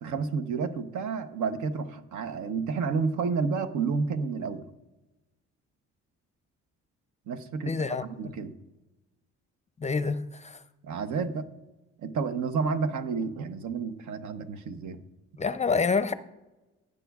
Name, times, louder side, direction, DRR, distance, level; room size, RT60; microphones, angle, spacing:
voice 1, 0.0-4.7 7.3-8.5 10.8-11.5 12.0-15.0, right 5 dB, 75° right, 0.9 m, -30 dB
voice 2, 7.7-8.3 9.8-10.6 15.4-16.1, left 4 dB, 25° left, 0.5 m, -28 dB
16.5 x 8.3 x 2.4 m
cardioid pair, 90°, 30 cm